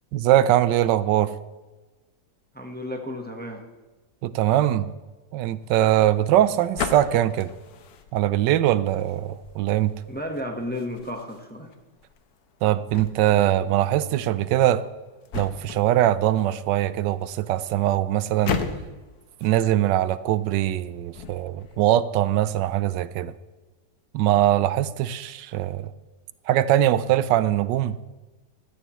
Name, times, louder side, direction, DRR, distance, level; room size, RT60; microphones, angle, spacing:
voice 1, 0.1-1.3 4.2-4.9 5.3-7.5 8.1-9.9 12.6-14.8 15.3-18.6 19.4-23.3 24.1-25.9 26.5-28.0, right 13 dB, 85° right, 15 dB, 1.2 m, -22 dB
voice 2, 2.5-3.6 10.1-11.7, left 1 dB, 5° left, 3 dB, 0.9 m, -33 dB
sound 1, 5.6-21.8, left 6 dB, 65° left, 1.3 m, -38 dB
16.0 x 13.0 x 3.1 m, 1.2 s
omnidirectional pair, 1.9 m